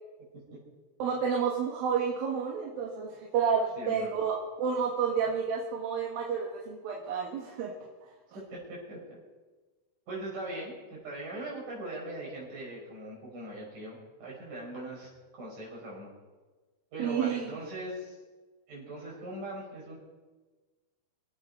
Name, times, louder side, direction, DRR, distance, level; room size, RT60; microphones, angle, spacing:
voice 1, 1.0-7.7 17.0-17.5, right 6 dB, 65° right, -1 dB, 3.0 m, -30 dB
voice 2, 3.8-4.1 8.3-9.0 10.1-16.1 16.9-18.2 18.7-20.0, right 1 dB, 50° right, -4 dB, 6.9 m, -40 dB
25.5 x 8.7 x 5.4 m, 1.3 s
omnidirectional pair, 4.9 m